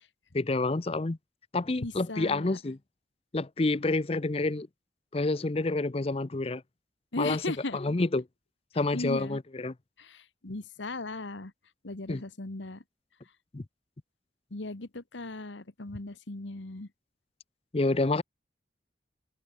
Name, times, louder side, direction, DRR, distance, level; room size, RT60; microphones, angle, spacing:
voice 1, 0.3-1.2 1.5-2.8 3.3-4.7 5.1-6.6 7.2-7.4 7.7-8.2 8.8-9.7 12.1-12.2 13.5-13.6 17.7-18.2, left 2 dB, 30° left, 0.6 m, -28 dB
voice 2, 1.8-2.6 7.1-8.0 8.9-9.4 10.0-11.5 11.8-12.8 14.5-16.9, left 2 dB, 85° left, 1.5 m, -37 dB
head